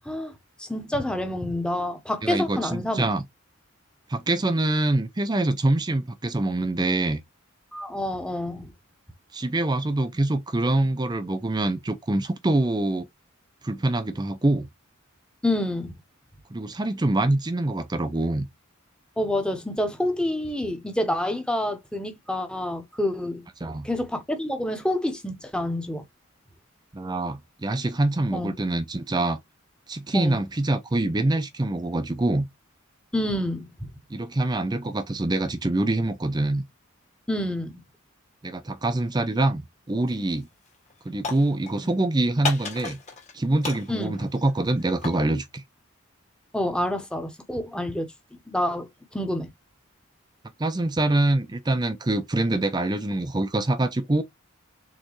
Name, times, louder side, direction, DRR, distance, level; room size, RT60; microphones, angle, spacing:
voice 1, 0.6-3.1 7.7-8.7 15.4-15.9 19.2-26.0 28.3-28.5 30.1-30.4 33.1-33.9 37.3-37.8 43.9-44.1 46.5-48.1 48.5-49.5, left 1 dB, 5° left, 0.9 m, -28 dB
voice 2, 2.2-3.2 4.1-7.2 9.3-13.1 13.6-14.7 16.5-18.5 23.6-23.9 26.9-29.4 29.9-32.5 34.1-36.6 38.4-40.5 41.0-43.0 43.3-45.6 50.6-54.2, right 2 dB, 20° right, 0.5 m, -25 dB
sound 1, 40.1-40.4 40.7-41.9 42.4-43.3 43.6-45.3, left 4 dB, 35° left, 1.5 m, -34 dB
4.3 x 4.0 x 3.1 m
head